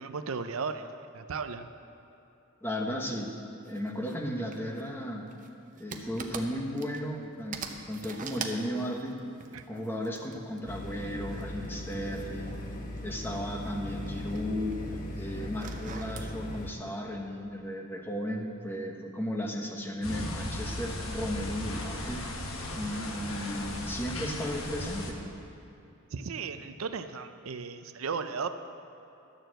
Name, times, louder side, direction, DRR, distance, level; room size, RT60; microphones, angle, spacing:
voice 1, 0.0-1.7 9.5-9.7 26.1-28.5, right 5 dB, 85° right, 9 dB, 0.6 m, -35 dB
voice 2, 2.6-3.4 3.7-5.3 5.8-9.2 9.7-12.7 13.0-14.8 15.2-22.2 22.7-25.2, equal, 10° left, 1 dB, 1.1 m, -35 dB
sound 1, 3.6-4.2 4.5-7.2 7.5-10.7 11.3-13.4 13.7-14.9 15.4-16.3, right 5 dB, 40° right, 0.8 m, -43 dB
sound 2, 10.7-16.7, left 1 dB, 40° left, 1.1 m, -38 dB
sound 3, 20.0-25.1, left 1 dB, 85° left, 1.4 m, -36 dB
12.5 x 6.9 x 7.7 m, 2.9 s
head